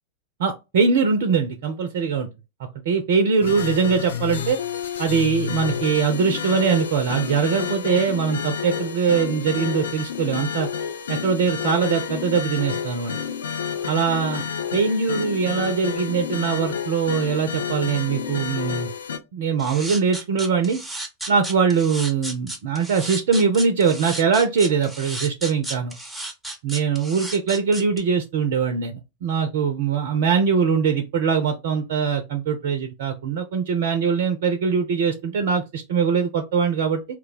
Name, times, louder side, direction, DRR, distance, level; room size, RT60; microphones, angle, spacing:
voice 1, 0.4-2.3 2.9-4.6 5.0-10.7 11.1-13.1 13.9-14.4 14.7-18.9 19.3-20.8 21.3-25.9 26.6-37.0, right 6 dB, 55° right, 0.4 m, -22 dB
sound 1, 3.4-19.2, left 7 dB, 65° left, 0.4 m, -30 dB
sound 2, 19.6-28.0, right 1 dB, 5° right, 0.7 m, -33 dB
2.3 x 2.1 x 3.8 m
figure-of-eight pair, 90°, 0 cm